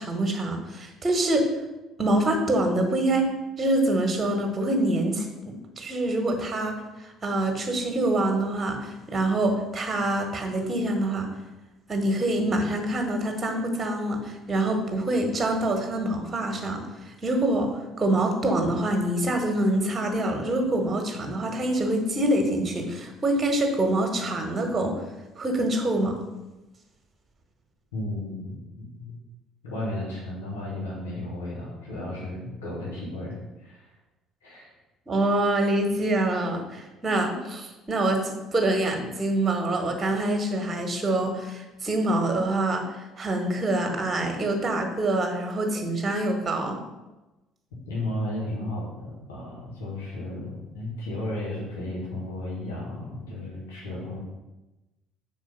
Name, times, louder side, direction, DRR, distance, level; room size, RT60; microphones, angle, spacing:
voice 1, 0.0-1.5 2.0-3.3 3.6-11.3 11.9-16.8 17.2-25.0 25.4-26.2 35.1-46.8, right 1 dB, 25° right, 3 dB, 1.5 m, -25 dB
voice 2, 27.9-29.1 29.6-33.9 34.4-34.7 47.9-54.2, left 1 dB, 70° left, -5 dB, 1.9 m, -34 dB
5.7 x 4.8 x 5.4 m, 1.1 s
figure-of-eight pair, 55°, 0 cm